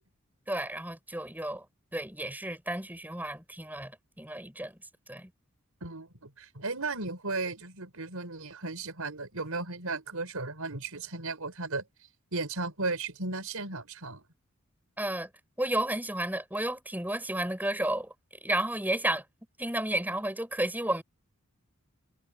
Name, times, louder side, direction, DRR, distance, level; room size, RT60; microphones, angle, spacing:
voice 1, 0.5-1.7 1.9-4.8 5.1-5.3 15.0-15.3 15.6-18.1 18.4-19.2 19.6-21.0, right 1 dB, 10° right, 7.6 m, -32 dB
voice 2, 5.8-11.8 12.3-14.2, right 3 dB, 85° right, 4.9 m, -35 dB
head